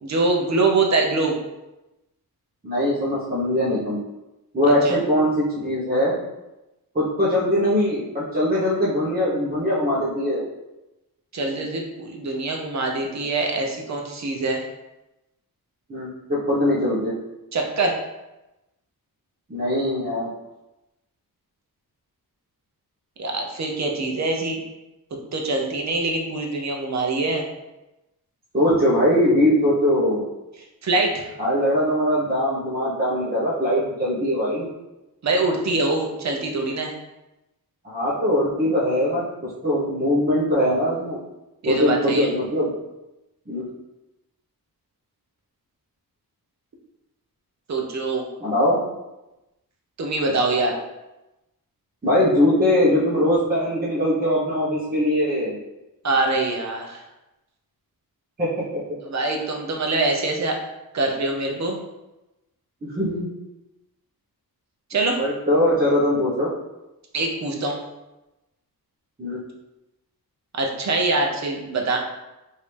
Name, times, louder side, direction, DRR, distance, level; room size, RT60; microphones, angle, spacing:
voice 1, 0.0-1.4 4.8-4.9 11.3-14.6 17.5-18.0 23.2-24.6 25.3-27.4 30.8-31.3 35.2-36.9 41.6-42.3 47.7-48.3 50.0-50.8 56.0-57.0 59.0-60.6 60.9-61.8 64.9-65.2 67.1-67.8 70.5-72.0, right 2 dB, 45° right, 1 dB, 0.8 m, -24 dB
voice 2, 2.6-4.0 4.5-6.2 6.9-10.4 15.9-17.1 19.5-20.3 28.5-30.2 31.4-34.7 37.8-39.2 39.6-41.2 41.6-42.7 43.5-43.7 48.4-48.8 52.0-55.6 58.4-58.8 62.8-63.3 65.2-66.5 69.2-69.4, left 1 dB, 25° right, -9 dB, 1.1 m, -21 dB
5.2 x 2.8 x 3.3 m, 0.98 s
wide cardioid pair, 175°, 37 cm